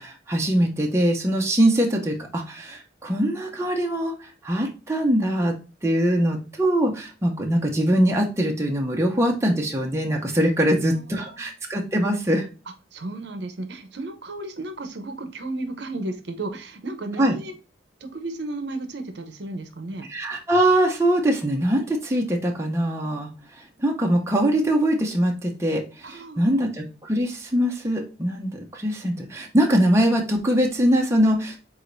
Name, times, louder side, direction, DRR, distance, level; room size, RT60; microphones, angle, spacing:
voice 1, 0.0-5.5 5.8-12.5 17.2-17.3 20.1-23.3 23.6-31.6, right 1 dB, 15° right, 1 dB, 0.6 m, -22 dB
voice 2, 10.6-11.5 12.9-17.6 18.0-20.1 26.0-26.6, right 2 dB, 60° right, 7 dB, 0.7 m, -34 dB
4.9 x 3.9 x 2.5 m, 0.33 s
head